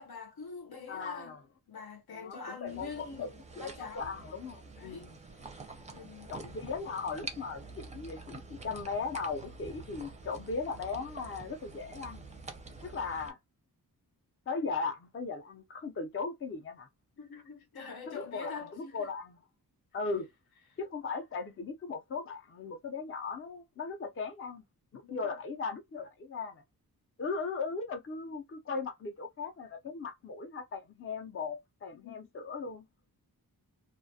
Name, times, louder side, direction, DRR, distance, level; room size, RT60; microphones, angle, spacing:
voice 1, 0.0-1.4 1.7-4.1 4.8-5.1 5.9-6.4 17.2-19.1 25.0-25.4 31.9-32.3, left 5 dB, 80° left, 0.8 m, -45 dB
voice 2, 0.9-1.4 2.1-3.3 3.6-5.1 6.3-12.3 12.8-13.4 14.5-16.9 18.1-19.4 19.9-20.3 20.8-24.6 24.9-26.6 27.2-32.8, left 4 dB, 35° left, 0.5 m, -38 dB
sound 1, 2.7-13.3, right 3 dB, 20° right, 0.4 m, -47 dB
2.3 x 2.2 x 2.6 m
wide cardioid pair, 155°, 37 cm